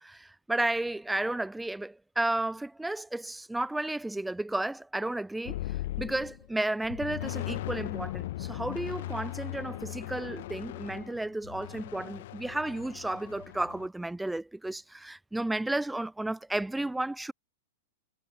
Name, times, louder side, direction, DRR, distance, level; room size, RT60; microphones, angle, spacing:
voice 1, 0.0-5.6 6.0-17.3, right 2 dB, 5° right, 0.9 m, -33 dB
sound 1, 5.5-6.5 6.8-13.9, left 16 dB, 60° left, 0.7 m, -38 dB
hypercardioid pair, 125°, 0 cm